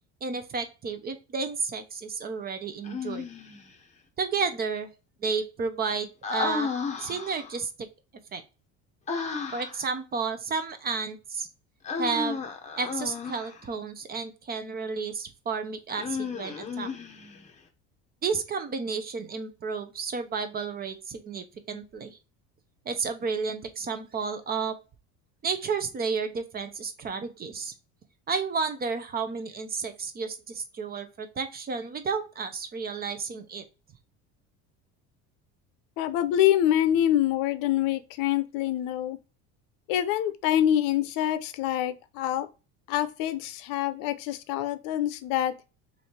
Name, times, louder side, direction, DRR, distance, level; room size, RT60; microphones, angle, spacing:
voice 1, 0.2-3.2 4.2-4.9 5.2-7.9 8.3-8.4 9.5-11.5 12.0-12.4 12.8-16.9 18.2-22.2 22.9-24.8 25.4-27.7 28.3-33.6, right 5 dB, 25° right, 0.6 m, -32 dB
Human voice, 2.8-3.7 6.2-7.6 9.1-9.9 11.8-13.6 15.9-17.5, left 5 dB, 20° left, 0.7 m, -33 dB
voice 2, 36.0-39.2 39.9-42.5 42.9-45.5, left 11 dB, 75° left, 0.7 m, -25 dB
3.2 x 2.7 x 4.2 m
cardioid pair, 135°, 34 cm